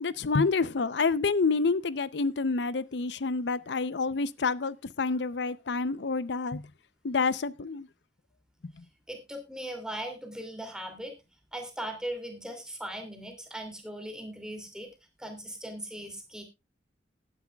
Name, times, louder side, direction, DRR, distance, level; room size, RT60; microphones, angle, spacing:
voice 1, 0.0-6.7 7.0-7.9 8.6-8.7, left 4 dB, 70° left, 0.6 m, -28 dB
voice 2, 9.1-11.2 11.5-14.9 15.2-16.4, right 1 dB, 5° right, 2.7 m, -39 dB
18.5 x 9.7 x 2.3 m
head